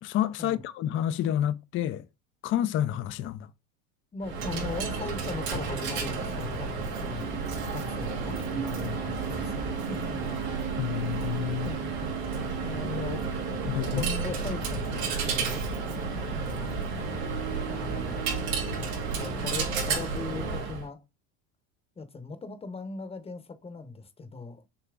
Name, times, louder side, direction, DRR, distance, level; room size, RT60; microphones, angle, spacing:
voice 1, 0.0-2.0 2.4-3.5 10.8-11.7 13.7-14.1, left 11 dB, 30° left, 0.4 m, -29 dB
voice 2, 4.1-7.3 7.7-10.3 11.6-12.1 12.6-13.2 13.9-15.0 15.2-15.7 16.3-16.7 17.7-18.3 19.1-21.0 22.0-24.7, left 3 dB, 15° left, 0.8 m, -39 dB
Coin (dropping), 4.2-20.9, right 4 dB, 80° right, 2.4 m, -31 dB
6.8 x 2.9 x 2.3 m
supercardioid pair, 105°, 40 cm